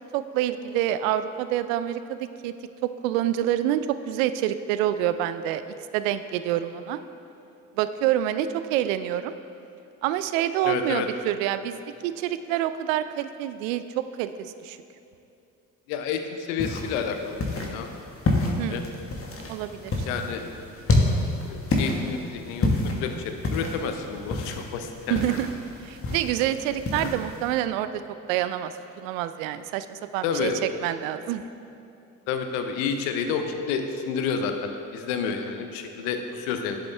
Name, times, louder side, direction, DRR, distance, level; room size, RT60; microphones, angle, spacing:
voice 1, 0.1-2.5 2.8-5.6 5.9-7.0 7.8-9.3 10.0-14.8 18.6-19.0 19.5-20.1 25.1-25.5 25.8-27.9 28.3-30.5 30.8-31.4, right 12 dB, 80° right, 12 dB, 0.5 m, -27 dB
voice 2, 10.6-11.1 15.9-17.9 18.5-18.8 20.0-20.4 20.9-21.1 21.5-25.2 30.2-30.6 32.3-36.8, left 6 dB, 75° left, 6 dB, 0.8 m, -30 dB
sound 1, 16.6-27.5, left 2 dB, 35° left, 1.4 m, -29 dB
10.5 x 7.7 x 3.4 m, 2.8 s
hypercardioid pair, 50°, 39 cm